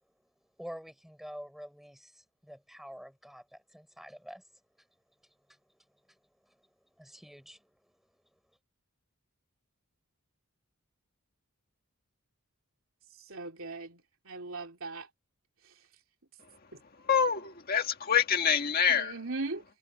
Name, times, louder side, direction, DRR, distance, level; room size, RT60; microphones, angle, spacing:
voice 1, 0.6-4.4 7.0-7.7, equal, ahead, 6.4 m, -47 dB
voice 2, 13.3-15.1 18.9-19.6, right 3 dB, 65° right, 3.5 m, -39 dB
voice 3, 17.0-19.2, left 7 dB, 45° left, 1.7 m, -26 dB
head